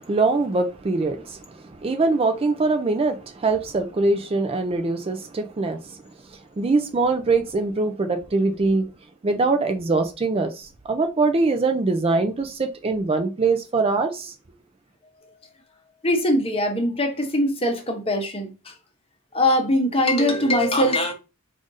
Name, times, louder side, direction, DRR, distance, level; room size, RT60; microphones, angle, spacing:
voice 1, 0.0-8.9 9.2-14.4, right 3 dB, 25° right, 0.4 m, -23 dB
voice 2, 16.0-18.7 19.3-21.1, left 1 dB, 25° left, 0.8 m, -22 dB
5.0 x 2.5 x 3.9 m
head